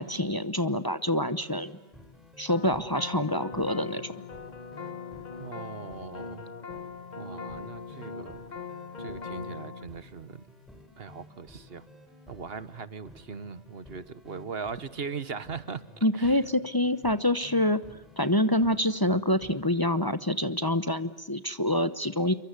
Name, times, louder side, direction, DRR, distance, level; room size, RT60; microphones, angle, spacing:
voice 1, 0.0-1.7 2.4-4.1 16.0-17.8 18.2-22.3, left 1 dB, 20° left, 12 dB, 0.9 m, -26 dB
sound 1, 1.4-20.1, left 1 dB, ahead, 5.4 m, -53 dB
sound 2, 2.5-9.9, left 5 dB, 40° left, 1.3 m, -40 dB
voice 2, 5.4-6.4 7.2-8.4 9.0-10.4 11.0-11.8 12.3-16.4, right 5 dB, 60° right, 15 dB, 1.4 m, -39 dB
28.0 x 24.0 x 8.2 m, 0.96 s
omnidirectional pair, 1.1 m